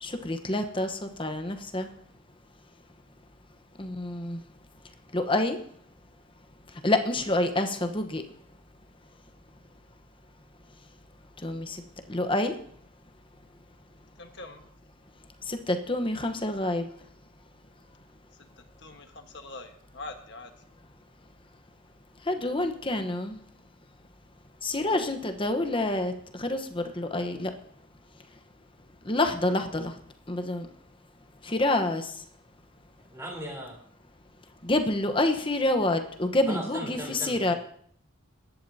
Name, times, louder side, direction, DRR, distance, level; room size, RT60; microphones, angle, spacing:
voice 1, 0.0-1.9 3.8-4.4 5.1-5.6 6.7-8.2 11.4-12.6 15.4-16.9 22.2-23.4 24.6-27.5 29.0-30.0 30.3-30.7 31.4-32.2 34.6-37.5, left 2 dB, 25° left, 6 dB, 1.0 m, -28 dB
voice 2, 14.2-14.6 18.6-20.5, left 2 dB, 55° left, 5 dB, 1.4 m, -43 dB
voice 3, 33.0-33.8 36.5-37.6, right 1 dB, 15° right, 0 dB, 3.5 m, -38 dB
22.0 x 11.0 x 2.8 m, 0.64 s
head